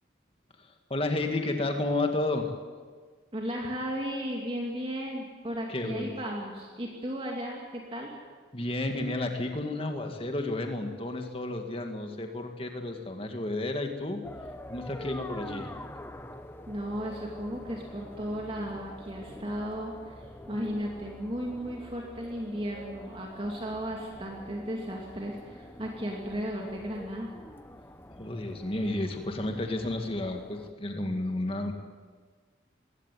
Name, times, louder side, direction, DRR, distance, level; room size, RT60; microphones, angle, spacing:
voice 1, 0.9-2.5 5.7-6.1 8.5-14.2 14.7-15.7 28.2-31.7, left 2 dB, 30° left, 4 dB, 2.1 m, -31 dB
voice 2, 3.3-8.1 16.7-20.2 20.5-27.3, equal, 30° right, -1 dB, 2.6 m, -35 dB
sound 1, 14.2-30.7, left 1 dB, 10° left, 1.0 m, -46 dB
22.5 x 16.5 x 9.4 m, 1.5 s
head